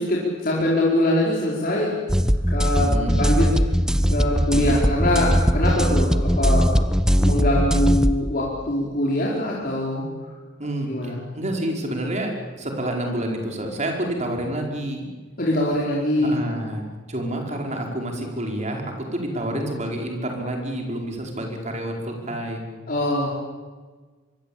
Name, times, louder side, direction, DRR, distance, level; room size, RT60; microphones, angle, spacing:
voice 1, 0.0-2.0 2.5-3.5 4.0-6.7 7.1-10.1 10.9-11.2 15.4-16.3 22.9-23.3, left 1 dB, 50° left, -4 dB, 4.8 m, -23 dB
sound 1, 2.1-8.1, equal, 5° right, 1.0 m, -20 dB
voice 2, 2.8-3.2 10.6-15.1 16.2-22.8, right 1 dB, 40° right, 2 dB, 5.0 m, -29 dB
24.5 x 23.5 x 8.9 m, 1.4 s
head